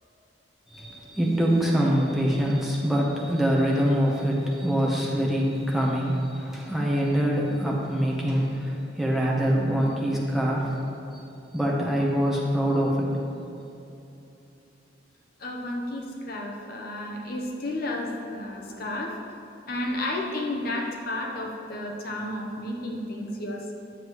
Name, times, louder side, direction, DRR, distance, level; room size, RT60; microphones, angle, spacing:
voice 1, 0.7-10.9 11.1-11.2 11.5-13.2, equal, ahead, -4 dB, 0.9 m, -24 dB
voice 2, 15.4-19.2 19.7-23.7, left 1 dB, 50° left, 0 dB, 0.8 m, -32 dB
9.5 x 7.3 x 3.1 m, 2.8 s
head